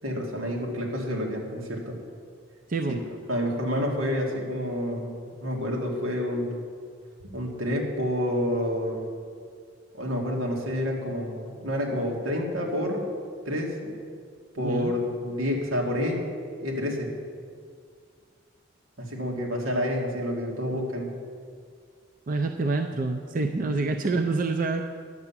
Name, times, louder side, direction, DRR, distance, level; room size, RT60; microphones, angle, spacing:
voice 1, 0.0-2.0 2.9-3.0 3.3-6.6 7.3-9.1 9.9-13.0 13.5-14.1 14.6-16.2 16.6-17.1 19.0-21.1 23.6-23.8, equal, 90° right, -1 dB, 2.1 m, -29 dB
voice 2, 14.6-14.9 22.3-24.9, right 3 dB, 40° right, 5 dB, 0.5 m, -27 dB
9.7 x 7.0 x 7.3 m, 2.1 s
head